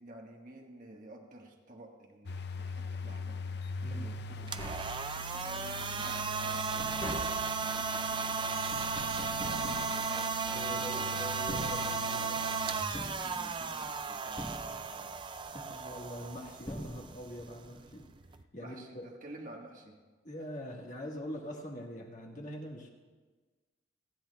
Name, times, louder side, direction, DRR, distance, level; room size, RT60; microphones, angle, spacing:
voice 1, 0.0-3.4 3.9-4.6 5.1-10.9 11.4-15.1 18.6-20.0, right 1 dB, 40° right, 1 dB, 1.4 m, -52 dB
sound 1, 2.3-12.8, left 3 dB, 55° left, 0.5 m, -42 dB
Tap, 4.4-5.5 6.0-10.7 11.3-12.4 12.9-13.9 14.4-15.2 16.2-16.3 16.7-17.5 17.8-17.9, equal, 25° left, 1.3 m, -44 dB
sound 2, 4.4-18.4, right 5 dB, 25° right, 0.4 m, -35 dB
voice 2, 10.5-12.5 15.5-18.1 18.5-19.1 20.2-22.9, equal, 40° left, 0 dB, 1.5 m, -43 dB
29.5 x 10.0 x 2.3 m, 1.3 s
head